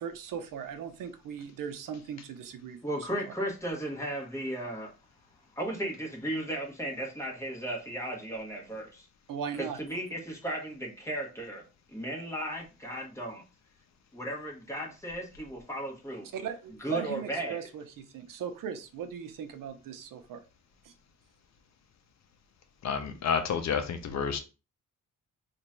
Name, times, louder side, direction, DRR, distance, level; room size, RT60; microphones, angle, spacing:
voice 1, 0.0-3.3 9.3-9.8 16.3-20.4 20.8-20.9, right 7 dB, 75° right, 0.6 m, -38 dB
voice 2, 2.8-4.9 5.6-8.8 9.8-11.6 11.9-13.4 14.1-16.2 16.8-17.6, right 1 dB, 10° left, 1.3 m, -35 dB
voice 3, 22.8-24.4, left 6 dB, 55° left, 0.6 m, -30 dB
3.0 x 2.5 x 4.4 m
cardioid pair, 125°, 33 cm